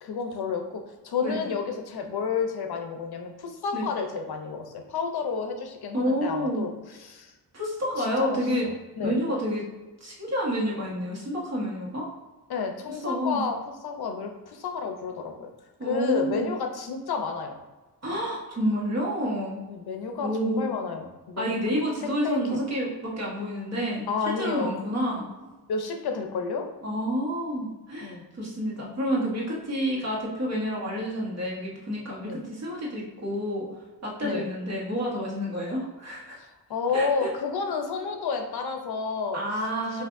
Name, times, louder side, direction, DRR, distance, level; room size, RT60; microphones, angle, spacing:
voice 1, 0.0-7.3 8.0-9.2 12.5-15.5 15.8-17.6 19.7-21.8 22.2-22.6 24.1-24.7 25.7-26.7 28.0-28.2 32.2-32.4 34.2-34.5 36.4-39.4 39.9-40.0, left 5 dB, 70° left, 4 dB, 0.6 m, -31 dB
voice 2, 5.9-6.7 7.5-8.7 9.0-9.6 10.0-12.0 13.0-13.4 15.8-16.5 18.0-19.6 20.2-20.7 21.4-24.0 24.4-25.3 26.8-33.7 34.0-36.4 36.9-37.3 39.3-40.0, equal, 40° right, -4 dB, 1.2 m, -29 dB
5.9 x 2.6 x 2.5 m, 1.2 s
wide cardioid pair, 125°, 39 cm